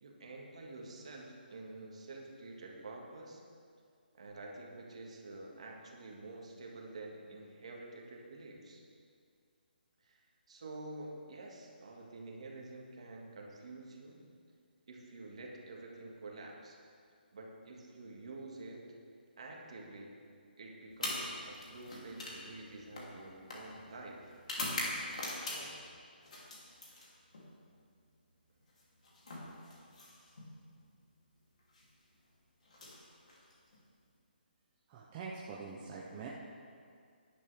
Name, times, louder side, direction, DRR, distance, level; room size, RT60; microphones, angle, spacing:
voice 1, 0.0-3.4 4.1-8.8 10.0-10.2 10.5-14.2 14.9-16.8 17.3-18.8 19.4-20.1 20.6-24.4 25.5-25.7, right 2 dB, 35° right, -1 dB, 1.8 m, -48 dB
sound 1, 20.9-25.9 26.2-27.5 28.7-30.5 31.6-31.8 32.6-33.8, left 1 dB, 45° left, 2.7 m, -42 dB
voice 2, 34.9-36.3, right 5 dB, 10° right, -4 dB, 0.4 m, -44 dB
17.5 x 10.5 x 3.4 m, 2.2 s
hypercardioid pair, 180°, 6 cm